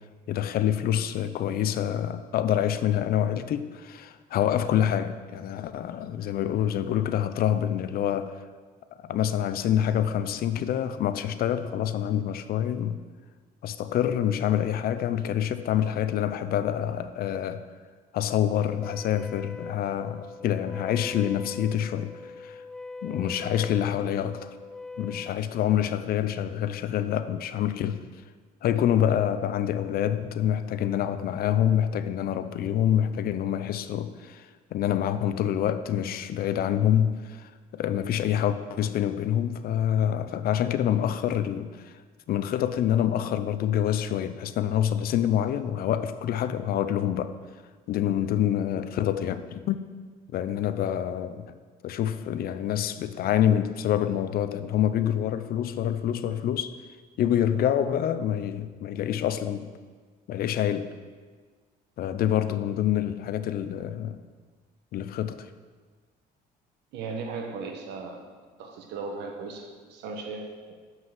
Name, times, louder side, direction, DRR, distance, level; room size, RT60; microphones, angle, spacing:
voice 1, 0.3-8.4 9.0-13.0 13.6-17.6 18.1-22.6 23.0-24.5 25.0-28.0 28.6-41.9 42.3-47.3 47.9-49.8 50.3-51.5 51.8-56.8 57.2-59.7 60.3-60.9 62.0-64.2 64.9-65.5, left 10 dB, 60° left, 0.6 m, -26 dB
Wind instrument woodwind instrument, 18.8-25.4, left 3 dB, 5° left, 0.3 m, -41 dB
voice 2, 66.9-68.2 68.6-70.7, right 4 dB, 85° right, 1.4 m, -37 dB
7.5 x 6.1 x 7.6 m
cardioid pair, 110°, 17 cm